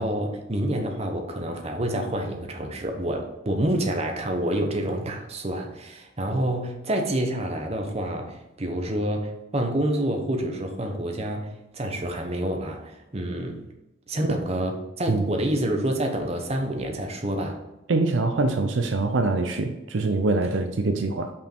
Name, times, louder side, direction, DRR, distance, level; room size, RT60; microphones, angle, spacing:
voice 1, 0.0-13.6 14.1-17.6, right 1 dB, 30° right, 3 dB, 0.9 m, -28 dB
voice 2, 17.9-21.3, right 3 dB, 70° right, 6 dB, 0.6 m, -24 dB
5.6 x 5.2 x 4.4 m, 0.98 s
head